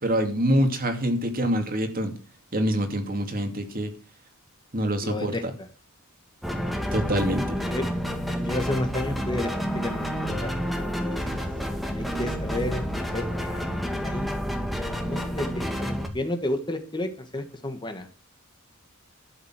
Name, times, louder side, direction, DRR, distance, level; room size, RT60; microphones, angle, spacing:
voice 1, 0.0-2.1 2.5-3.9 4.7-5.4 6.9-7.6, equal, 40° right, 6 dB, 2.6 m, -25 dB
voice 2, 5.0-5.7 7.6-7.8 8.4-11.3 11.9-13.7 14.0-14.4 15.1-18.1, left 1 dB, 20° left, 7 dB, 1.5 m, -32 dB
sound 1, 6.4-16.1, equal, ahead, 2.0 m, -29 dB
12.0 x 7.3 x 7.6 m, 0.39 s
head